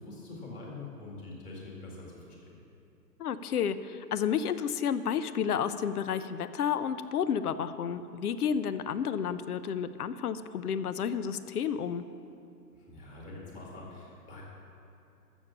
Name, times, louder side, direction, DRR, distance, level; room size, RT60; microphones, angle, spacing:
voice 1, 0.0-2.5 12.9-14.4, left 2 dB, 15° left, -3 dB, 2.0 m, -44 dB
voice 2, 3.2-12.0, left 7 dB, 65° left, 13 dB, 0.7 m, -31 dB
13.5 x 7.2 x 7.2 m, 2.6 s
hypercardioid pair, 155°, 49 cm